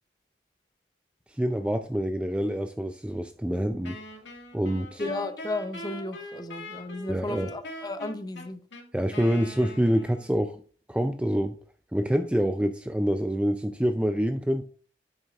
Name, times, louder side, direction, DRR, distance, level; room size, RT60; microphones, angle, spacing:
voice 1, 1.3-4.0 4.5-5.0 7.1-7.5 8.9-10.6 10.9-11.5 11.9-14.6, equal, 5° right, 0.3 m, -26 dB
Wind instrument woodwind instrument, 3.8-10.4, left 1 dB, 90° left, 1.9 m, -42 dB
voice 2, 5.0-8.6, left 2 dB, 20° left, 0.7 m, -34 dB
9.8 x 7.9 x 2.4 m
head